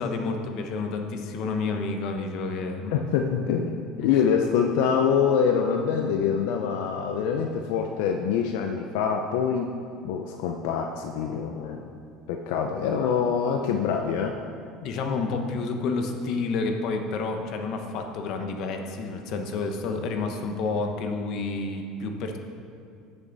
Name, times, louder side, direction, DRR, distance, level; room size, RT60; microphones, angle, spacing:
voice 1, 0.0-2.9 4.0-4.2 14.8-22.4, left 3 dB, 55° left, 4 dB, 1.1 m, -29 dB
voice 2, 2.9-9.7 10.0-11.9 12.3-14.4, left 7 dB, 85° left, 3 dB, 0.6 m, -25 dB
14.5 x 6.9 x 4.1 m, 2.5 s
cardioid pair, 150°, 0 cm